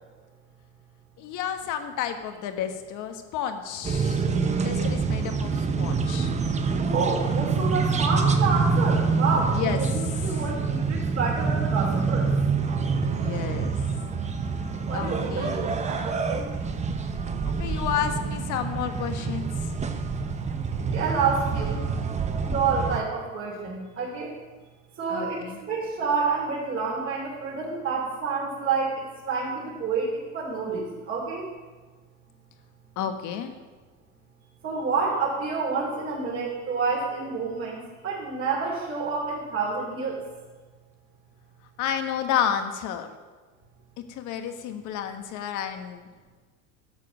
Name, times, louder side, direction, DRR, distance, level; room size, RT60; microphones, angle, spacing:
voice 1, 1.2-4.3 4.6-6.3 9.5-9.8 13.1-13.8 14.9-15.7 17.4-19.5 25.1-25.6 33.0-33.5 41.8-43.1 44.1-46.1, left 9 dB, 60° left, 7 dB, 1.4 m, -31 dB
sound 1, 3.8-23.0, right 4 dB, 20° right, 0.8 m, -26 dB
voice 2, 6.8-12.3 14.9-16.5 20.9-21.9 22.4-24.3 25.0-31.5 34.6-37.8 38.0-40.2, right 4 dB, 35° right, -6 dB, 3.3 m, -28 dB
12.0 x 7.5 x 6.3 m, 1.3 s
supercardioid pair, 125°, 35 cm